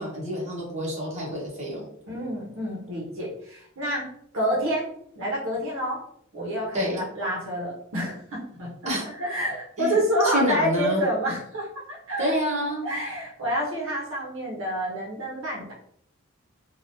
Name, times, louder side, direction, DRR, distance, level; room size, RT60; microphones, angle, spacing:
voice 1, 0.0-1.8 6.7-7.0 8.8-9.1 9.8-10.0 10.2-11.1 12.2-12.9, equal, 35° right, -4 dB, 1.1 m, -27 dB
voice 2, 2.1-4.0 4.3-4.9 5.1-6.0 6.3-12.3 12.8-15.7, equal, 65° right, -4 dB, 0.9 m, -28 dB
3.4 x 2.4 x 2.6 m, 0.66 s
head